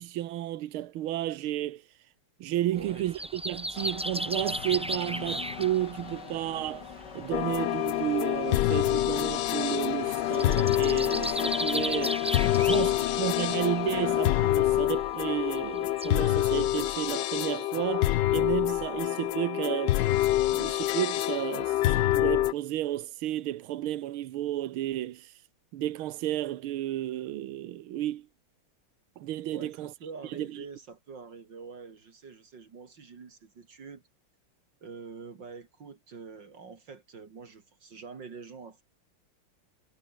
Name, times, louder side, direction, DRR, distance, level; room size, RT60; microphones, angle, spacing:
voice 1, 0.0-1.8 2.4-6.9 7.1-12.2 12.7-12.9 13.2-20.0 20.5-25.3 25.7-28.3 29.2-29.9 30.4-30.5, right 13 dB, 75° right, 1.8 m, -32 dB
voice 2, 2.7-3.1 12.4-13.2 29.5-34.0 34.8-38.8, right 5 dB, 55° right, 2.8 m, -45 dB
sound 1, 2.8-16.3, right 1 dB, 5° right, 0.8 m, -37 dB
sound 2, 3.7-14.8, left 7 dB, 55° left, 2.2 m, -42 dB
sound 3, 7.3-22.5, left 14 dB, 70° left, 1.1 m, -26 dB
omnidirectional pair, 2.4 m